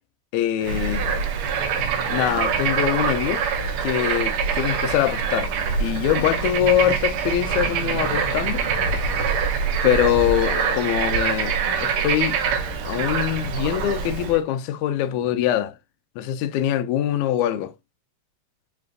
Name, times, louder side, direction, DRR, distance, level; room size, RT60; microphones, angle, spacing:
voice 1, 0.3-1.1 2.1-3.4 3.8-5.5 5.8-8.6 9.8-12.4 12.8-15.8 16.2-17.7, left 11 dB, 80° left, 1.9 m, -23 dB
Bird / Frog, 0.6-14.4, right 6 dB, 85° right, 1.2 m, -24 dB
5.2 x 3.4 x 2.3 m
omnidirectional pair, 3.4 m